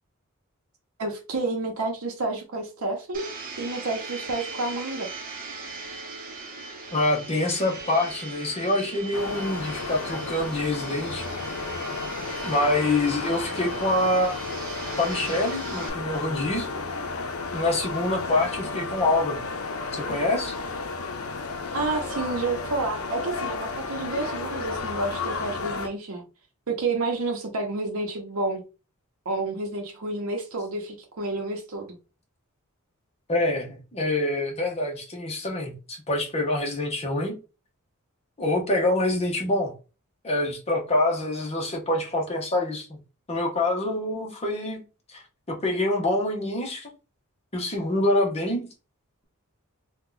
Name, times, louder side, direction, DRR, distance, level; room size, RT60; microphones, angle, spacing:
voice 1, 1.0-3.3 3.6-5.1 21.7-26.2 26.7-28.6 29.2-31.9, right 2 dB, 75° right, 0.8 m, -30 dB
Domestic sounds home sounds, 3.1-15.9, right 3 dB, 40° right, 0.8 m, -39 dB
voice 2, 6.9-11.2 12.4-14.4 15.0-16.7 17.5-19.4 19.9-20.5 33.3-37.3 38.4-39.7 40.2-43.0 43.3-44.8 45.1-45.2 45.5-46.9 47.5-48.7, left 2 dB, 30° left, 0.8 m, -26 dB
sound 1, 9.1-25.9, left 3 dB, 80° left, 0.6 m, -33 dB
2.8 x 2.3 x 3.8 m
head